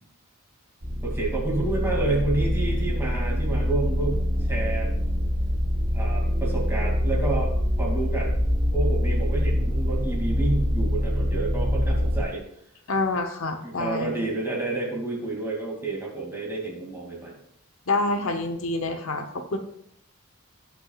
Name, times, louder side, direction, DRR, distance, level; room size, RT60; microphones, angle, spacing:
sound 1, 0.8-12.2, equal, 40° right, 1.4 m, -25 dB
voice 1, 1.0-4.9 5.9-7.5 7.8-8.3 8.7-12.4 13.6-17.4, right 2 dB, 10° right, -3 dB, 2.5 m, -29 dB
voice 2, 12.9-14.1 17.9-19.6, left 2 dB, 70° left, 6 dB, 0.9 m, -27 dB
18.0 x 6.2 x 2.4 m, 0.74 s
head